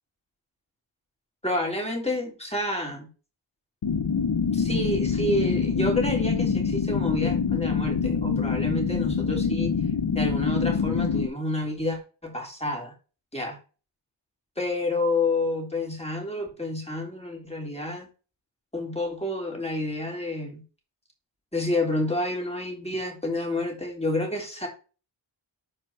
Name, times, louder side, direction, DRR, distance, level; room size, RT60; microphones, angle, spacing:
voice 1, 1.4-3.1 4.5-9.7 10.1-12.9 13.3-13.6 14.6-18.1 18.7-20.6 21.5-24.7, left 2 dB, 15° left, 1 dB, 3.4 m, -29 dB
sound 1, 3.8-11.3, left 6 dB, 60° left, 0.8 m, -25 dB
12.5 x 4.5 x 4.3 m, 0.35 s
wide cardioid pair, 55°, 48 cm